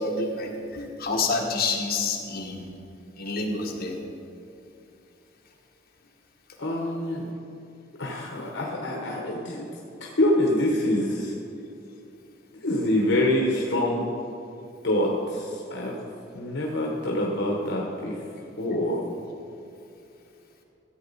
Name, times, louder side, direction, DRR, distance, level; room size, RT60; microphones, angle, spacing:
voice 1, 0.0-2.7 3.2-4.0 13.5-13.6, left 3 dB, 50° left, -1 dB, 1.6 m, -28 dB
voice 2, 6.6-7.3 8.0-9.7 10.0-11.3 12.6-14.0 14.8-16.1 16.3-18.2 18.6-19.0, left 1 dB, 65° left, -1 dB, 1.2 m, -25 dB
14.0 x 8.3 x 4.2 m, 2.8 s
head